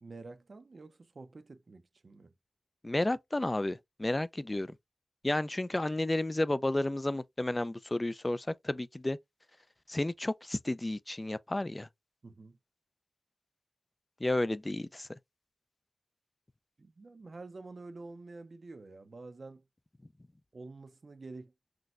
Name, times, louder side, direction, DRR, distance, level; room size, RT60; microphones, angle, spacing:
voice 1, 0.0-2.3 12.2-12.6 16.8-19.6 20.5-21.5, right 3 dB, 60° right, 0.6 m, -48 dB
voice 2, 2.8-4.7 5.2-9.2 9.9-11.9 14.2-15.1, left 1 dB, 25° left, 0.3 m, -32 dB
5.9 x 2.2 x 2.4 m
wide cardioid pair, 75°, 0 cm